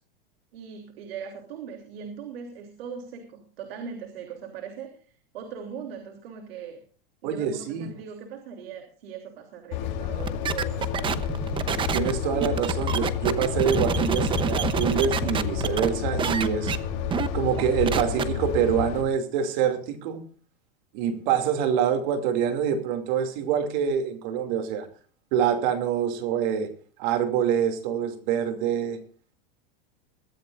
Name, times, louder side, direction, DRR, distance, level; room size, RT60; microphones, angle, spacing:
voice 1, 0.5-6.8 7.2-11.4 17.0-17.2, right 7 dB, 80° right, 3.2 m, -40 dB
voice 2, 7.2-7.9 11.9-16.7 17.3-20.2 20.9-24.9 25.3-26.7 27.0-29.0, right 8 dB, 55° right, 2.7 m, -25 dB
sound 1, 9.7-19.0, left 9 dB, 50° left, 3.4 m, -30 dB
sound 2, 10.2-15.9 16.2-16.8 17.1-17.3 17.6-18.2, right 7 dB, 15° right, 0.8 m, -27 dB
22.5 x 14.5 x 2.6 m
supercardioid pair, 145°, 29 cm